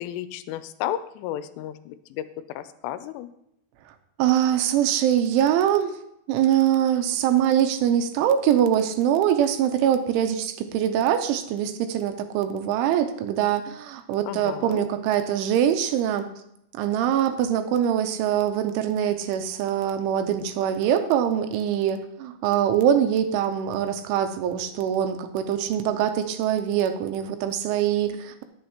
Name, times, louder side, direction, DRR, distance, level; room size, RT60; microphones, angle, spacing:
voice 1, 0.0-3.3 14.3-14.8, left 12 dB, 85° left, 12 dB, 3.0 m, -33 dB
voice 2, 4.2-6.0 6.3-16.3 16.7-28.4, right 10 dB, 85° right, 8 dB, 3.1 m, -23 dB
20.5 x 7.2 x 2.9 m, 0.77 s
omnidirectional pair, 5.7 m